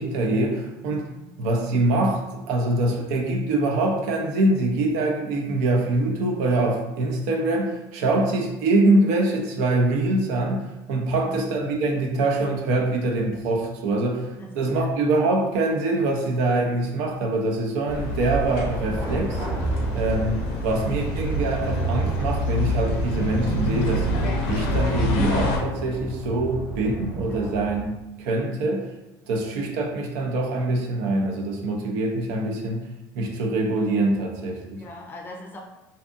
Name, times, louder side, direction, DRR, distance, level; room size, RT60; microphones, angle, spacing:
voice 1, 0.0-1.1 1.4-19.4 19.9-24.1 24.5-27.9 28.2-28.9 29.3-32.9 33.1-34.8, right 2 dB, 90° right, 1 dB, 0.5 m, -24 dB
voice 2, 11.1-11.4 14.3-15.3 27.3-27.6 34.8-35.6, left 1 dB, 25° left, 1 dB, 0.4 m, -42 dB
sound 1, 17.9-25.6, left 1 dB, 85° left, 0.5 m, -26 dB
sound 2, 18.4-27.8, right 3 dB, 15° right, 0.6 m, -32 dB
2.6 x 2.4 x 2.5 m, 0.99 s
cardioid pair, 140°, 9 cm